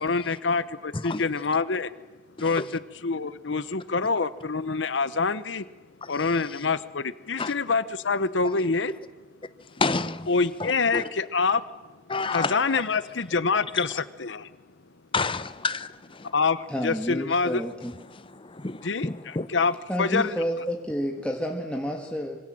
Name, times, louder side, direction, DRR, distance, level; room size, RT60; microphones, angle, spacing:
voice 1, 0.0-1.9 2.4-2.6 3.0-5.6 6.1-7.0 7.3-8.9 10.3-11.6 12.3-14.4 16.3-17.6 18.8-19.1 19.5-20.3, left 4 dB, 75° left, 15 dB, 0.9 m, -26 dB
voice 2, 9.8-10.3 10.6-11.0 12.1-12.6 15.1-15.9 18.5-19.5, left 4 dB, 30° left, 13 dB, 0.9 m, -28 dB
voice 3, 16.7-17.9 19.9-22.4, equal, 5° left, 1 dB, 1.8 m, -30 dB
26.0 x 24.5 x 7.7 m, 1.2 s
head